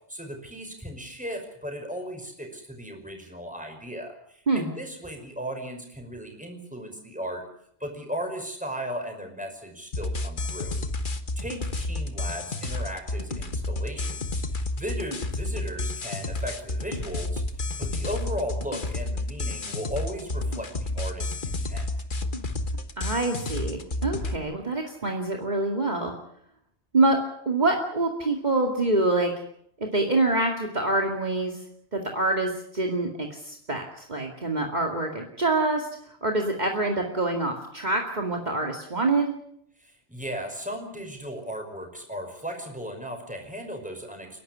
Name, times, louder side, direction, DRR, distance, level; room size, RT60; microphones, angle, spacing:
voice 1, 0.1-7.4 7.8-10.8 11.4-14.4 14.8-17.4 17.8-21.9 39.8-44.4, equal, 5° right, 3 dB, 5.5 m, -36 dB
sound 1, 9.9-24.4, left 2 dB, 50° left, 1.6 m, -31 dB
voice 2, 23.0-26.1 26.9-27.2 27.5-29.3 29.9-31.6 31.9-35.9 36.2-39.3, right 2 dB, 40° right, 1 dB, 2.5 m, -25 dB
29.5 x 12.0 x 9.6 m, 0.68 s
omnidirectional pair, 1.1 m